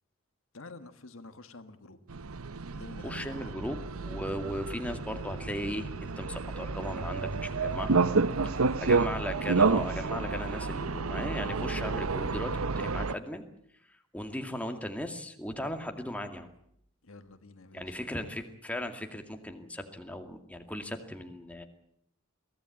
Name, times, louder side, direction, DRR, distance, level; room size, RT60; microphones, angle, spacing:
voice 1, 0.5-2.2 2.7-3.5 8.3-8.8 17.0-18.0, left 3 dB, 70° left, 9 dB, 1.5 m, -49 dB
sound 1, 2.1-13.1, right 4 dB, 90° right, 0.8 m, -30 dB
voice 2, 3.0-8.0 8.8-13.4 14.1-16.5 17.7-21.6, left 1 dB, 5° left, 5 dB, 2.3 m, -37 dB
23.0 x 17.0 x 8.6 m, 0.70 s
head